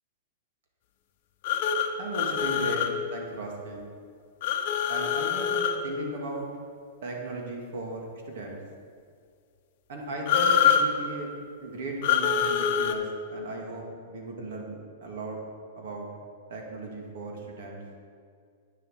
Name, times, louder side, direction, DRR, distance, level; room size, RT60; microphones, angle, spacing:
sound 1, 1.4-2.9 4.4-5.8 10.3-10.8 12.0-12.9, left 8 dB, 45° left, 0.8 m, -24 dB
voice 1, 2.0-3.9 4.9-6.5 7.0-8.6 9.9-11.3 11.6-15.4 15.8-16.1 16.5-17.8, right 2 dB, 60° right, 0 dB, 2.3 m, -37 dB
9.1 x 7.0 x 7.4 m, 2.2 s
supercardioid pair, 160°, 0 cm